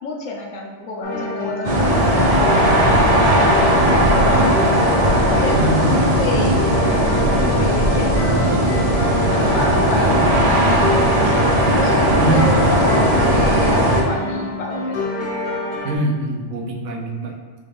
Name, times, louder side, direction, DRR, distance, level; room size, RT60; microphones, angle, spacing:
voice 1, 0.0-5.0 5.4-6.6 7.3-8.8 9.3-11.5 11.7-15.1, left 3 dB, 85° left, -1 dB, 1.1 m, -29 dB
sound 1, 1.0-16.0, left 1 dB, 65° left, 0.9 m, -26 dB
sound 2, 1.6-14.0, right 1 dB, 60° right, 0.3 m, -17 dB
voice 2, 5.5-6.4 12.2-12.5 15.8-17.3, right 2 dB, 80° right, 0 dB, 1.0 m, -23 dB
4.2 x 2.5 x 3.3 m, 1.5 s
omnidirectional pair, 1.3 m